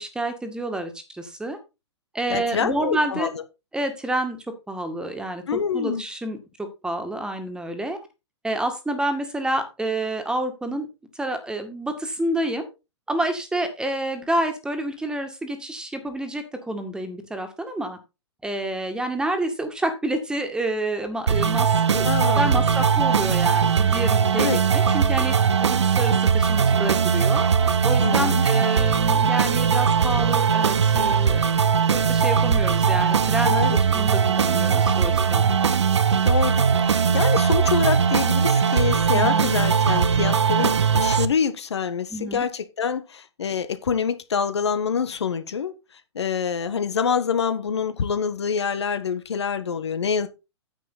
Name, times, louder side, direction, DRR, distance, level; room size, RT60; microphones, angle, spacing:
voice 1, 0.0-1.6 2.1-3.3 3.7-8.0 8.4-10.9 11.1-12.7 13.1-18.0 18.4-27.5 27.8-31.4 31.9-35.4 39.1-39.5 42.1-42.4, right 1 dB, 5° right, 2.0 m, -28 dB
voice 2, 2.3-3.4 5.5-6.0 22.0-22.7 24.4-24.6 28.0-28.5 33.5-33.8 36.2-45.7 46.1-50.3, left 6 dB, 70° left, 1.4 m, -26 dB
sound 1, 21.3-41.2, right 6 dB, 75° right, 0.9 m, -20 dB
9.8 x 8.1 x 4.1 m
figure-of-eight pair, 115°, 15 cm